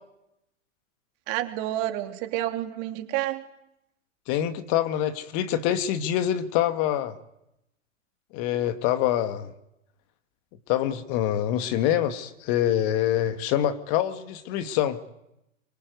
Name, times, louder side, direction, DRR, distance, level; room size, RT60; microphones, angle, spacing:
voice 1, 1.3-3.4, right 14 dB, 40° right, 6 dB, 3.1 m, -29 dB
voice 2, 4.3-7.2 8.3-9.5 10.7-15.0, left 11 dB, 40° left, 9 dB, 2.1 m, -25 dB
24.5 x 23.5 x 9.6 m, 0.85 s
hypercardioid pair, 110°, 38 cm